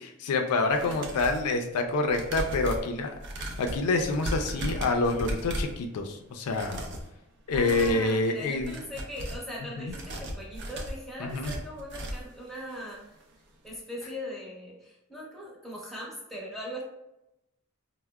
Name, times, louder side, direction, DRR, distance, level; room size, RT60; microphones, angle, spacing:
voice 1, 0.0-6.8 7.5-8.8 9.8-9.9 11.2-11.5, left 3 dB, 85° left, 4 dB, 0.4 m, -27 dB
sound 1, 0.6-1.5 2.1-5.8 6.4-7.1 7.5-8.0 8.5-9.5 9.9-12.3 12.7-12.8 13.2-13.3, equal, 55° right, 0.5 m, -36 dB
voice 2, 7.5-13.1 13.6-16.8, equal, ahead, -5 dB, 0.8 m, -40 dB
4.5 x 2.0 x 2.2 m, 0.89 s
head